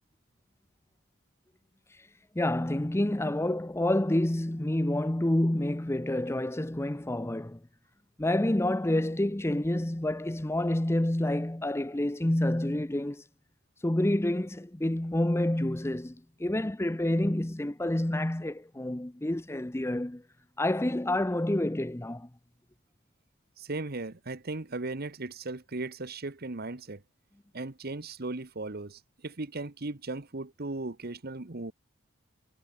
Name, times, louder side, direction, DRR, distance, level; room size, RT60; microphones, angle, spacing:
voice 1, 2.3-7.6 8.2-13.2 13.8-20.2 20.6-22.3, left 1 dB, 15° left, 0.7 m, -28 dB
voice 2, 23.6-27.0 27.5-31.7, right 2 dB, 50° right, 1.2 m, -37 dB
head